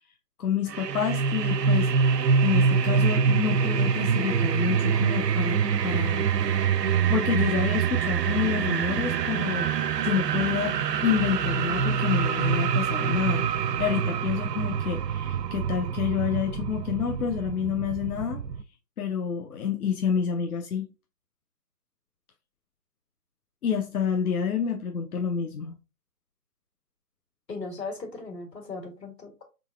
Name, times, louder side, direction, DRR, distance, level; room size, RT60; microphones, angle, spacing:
voice 1, 0.4-1.9 2.4-6.3 7.1-9.7 10.0-10.8 11.0-13.4 13.8-18.4 19.0-20.9 23.6-25.8, left 7 dB, 65° left, 0.6 m, -28 dB
sound 1, 0.7-18.6, right 6 dB, 85° right, 0.5 m, -25 dB
voice 2, 27.5-29.4, left 3 dB, 90° left, 1.9 m, -37 dB
3.9 x 3.5 x 2.3 m
figure-of-eight pair, 150°, 48 cm